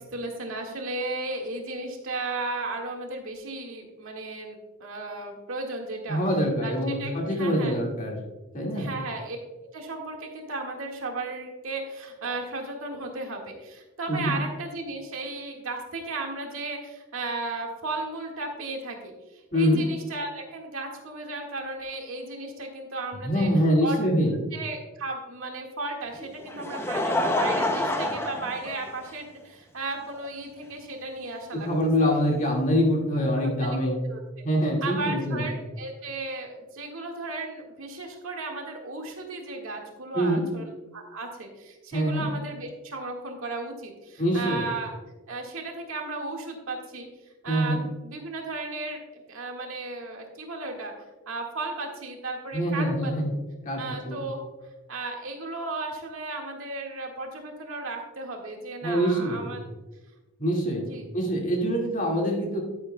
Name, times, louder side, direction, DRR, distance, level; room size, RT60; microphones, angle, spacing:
voice 1, 0.0-6.2 6.6-7.7 8.6-9.4 9.7-23.5 23.8-24.0 24.5-31.7 33.7-33.8 34.1-34.2 34.8-44.9 45.3-47.1 47.4-50.9 51.3-53.1 53.8-54.4 54.9-59.6 60.8-61.1, right 2 dB, 75° right, 1 dB, 1.8 m, -35 dB
voice 2, 6.1-8.2 8.5-8.9 14.1-14.3 19.5-19.8 23.2-24.3 31.5-34.0 34.4-35.4 40.1-40.4 41.9-42.3 44.2-44.6 47.5-47.8 52.5-53.3 53.6-54.2 58.8-59.4 60.4-60.9 61.1-62.6, equal, 35° left, -1 dB, 2.0 m, -24 dB
Laughter, 26.2-29.4 30.2-30.3 31.8-31.9, left 1 dB, 10° left, 0.5 m, -28 dB
11.5 x 9.1 x 2.2 m, 1.1 s
head